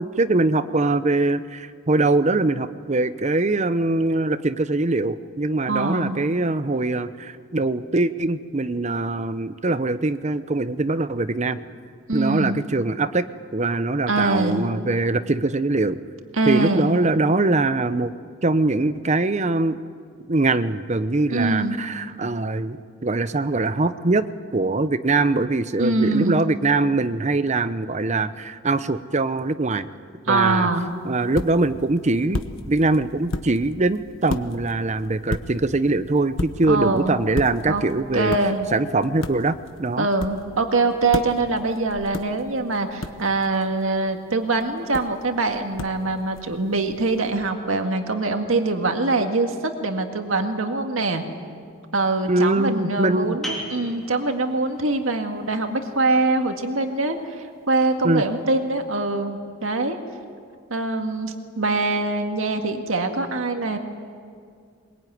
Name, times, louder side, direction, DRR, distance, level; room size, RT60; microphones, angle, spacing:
voice 1, 0.0-11.6 12.1-13.3 13.5-16.0 16.5-18.1 18.4-19.8 20.3-24.3 24.5-29.9 30.3-30.7 31.0-38.4 38.7-40.1 52.3-53.4 58.0-58.2, right 2 dB, 35° right, 12 dB, 0.8 m, -22 dB
voice 2, 5.7-6.2 12.1-12.6 14.1-14.7 16.3-17.0 21.3-21.8 25.8-26.4 30.3-30.9 36.7-37.2 37.7-37.8 38.1-38.7 40.0-49.5 49.8-51.2 51.9-60.0 60.7-63.8, right 3 dB, 90° right, 5 dB, 1.9 m, -23 dB
sound 1, 30.7-47.5, left 2 dB, 75° left, 1.2 m, -36 dB
sound 2, 53.4-58.8, equal, ahead, 3.7 m, -41 dB
22.0 x 22.0 x 9.4 m, 2.2 s
head